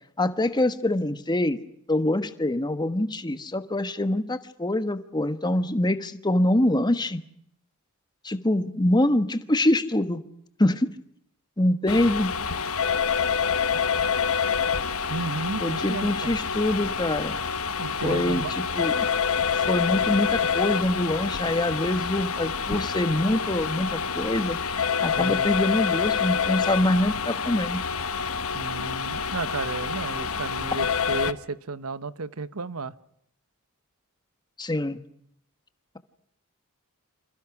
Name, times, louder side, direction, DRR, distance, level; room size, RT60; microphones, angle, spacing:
voice 1, 0.2-1.6 1.9-7.2 8.2-10.2 10.6-10.9 11.6-12.3 15.6-17.4 18.0-19.0 19.5-27.8 34.6-35.0, left 1 dB, 20° left, 11 dB, 1.3 m, -25 dB
sound 1, 11.9-31.3, left 6 dB, 80° left, 1.1 m, -27 dB
voice 2, 15.1-16.3 17.8-18.5 25.2-25.5 28.5-32.9, right 4 dB, 90° right, 15 dB, 1.0 m, -33 dB
28.0 x 27.5 x 6.1 m, 0.71 s
head